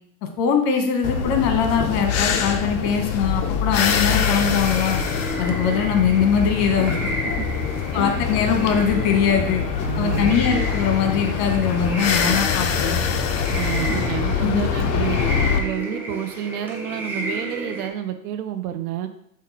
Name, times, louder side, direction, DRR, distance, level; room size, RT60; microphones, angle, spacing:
voice 1, 0.4-5.0 5.4-7.0 7.9-9.6 10.0-13.0 14.4-14.6, left 6 dB, 60° left, 5 dB, 1.1 m, -21 dB
sound 1, 1.0-15.6, left 7 dB, 35° left, 0.5 m, -24 dB
sound 2, 3.8-17.9, equal, 5° right, 0.7 m, -32 dB
voice 2, 7.9-8.2 9.8-10.4 13.5-15.2 15.5-19.1, right 11 dB, 70° right, 9 dB, 0.6 m, -29 dB
5.2 x 2.5 x 4.1 m, 0.72 s
hypercardioid pair, 100°, 47 cm